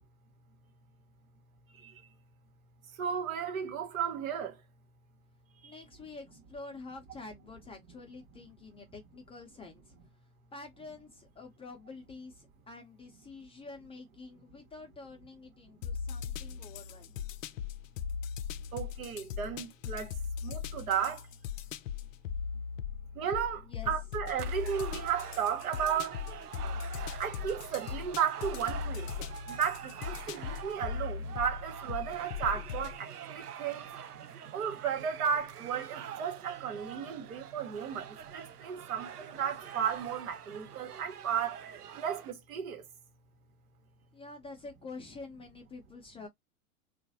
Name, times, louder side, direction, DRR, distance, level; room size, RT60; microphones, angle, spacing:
voice 1, 3.0-4.5 18.7-20.1 20.4-21.2 23.2-26.2 27.2-29.1 29.5-33.9 34.5-38.1 38.3-41.6 42.0-42.8, right 8 dB, 65° right, 1.2 m, -34 dB
voice 2, 5.6-9.9 10.5-17.2 23.7-23.9 44.1-46.3, left 3 dB, 15° left, 0.6 m, -48 dB
sound 1, 15.8-33.0, left 7 dB, 60° left, 0.5 m, -39 dB
sound 2, 24.3-42.3, right 9 dB, 90° right, 0.6 m, -45 dB
3.0 x 2.5 x 2.7 m
hypercardioid pair, 100°, 45 cm